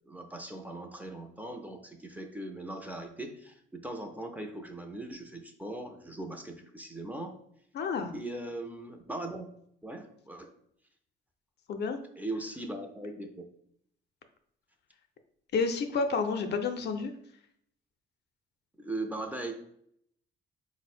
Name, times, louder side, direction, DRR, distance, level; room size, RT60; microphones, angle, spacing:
voice 1, 0.1-7.4 8.1-9.5 9.8-10.5 12.2-13.4 18.8-19.5, right 2 dB, 10° right, 4 dB, 0.5 m, -39 dB
voice 2, 7.7-8.1 11.7-12.0 15.5-17.1, left 4 dB, 60° left, 6 dB, 0.5 m, -30 dB
4.1 x 2.1 x 4.2 m, 0.71 s
cardioid pair, 90°, 20 cm